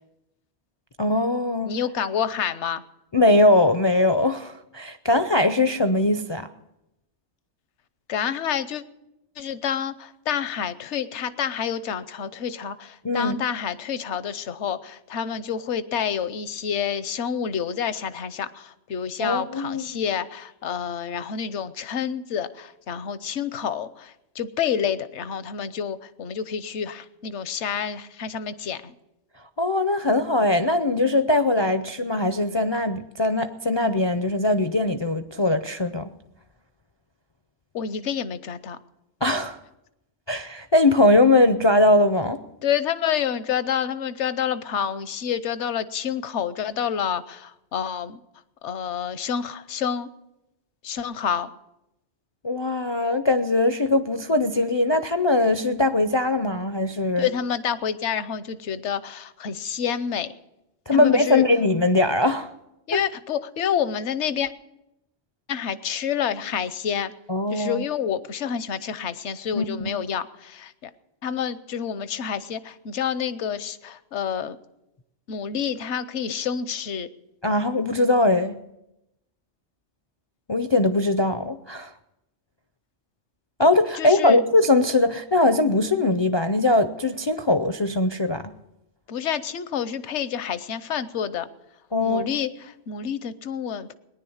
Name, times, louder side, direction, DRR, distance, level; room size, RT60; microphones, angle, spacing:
voice 1, 1.0-1.7 3.1-6.5 13.0-13.4 19.2-20.0 29.6-36.1 39.2-39.6 40.3-42.4 52.4-57.3 60.9-62.5 62.9-63.0 67.3-67.8 69.5-69.9 77.4-78.6 80.5-81.9 83.6-88.5 91.9-92.3, left 2 dB, 35° left, 0.4 m, -21 dB
voice 2, 1.6-2.8 8.1-8.8 9.4-28.9 37.7-38.8 42.6-48.2 48.6-50.1 50.8-51.5 57.2-60.3 60.9-61.4 62.9-64.5 65.5-67.1 67.5-70.9 71.2-74.6 75.3-77.1 83.9-84.4 89.1-91.5 92.0-93.9, left 8 dB, 75° left, 1.1 m, -28 dB
19.0 x 10.5 x 7.1 m
omnidirectional pair, 1.2 m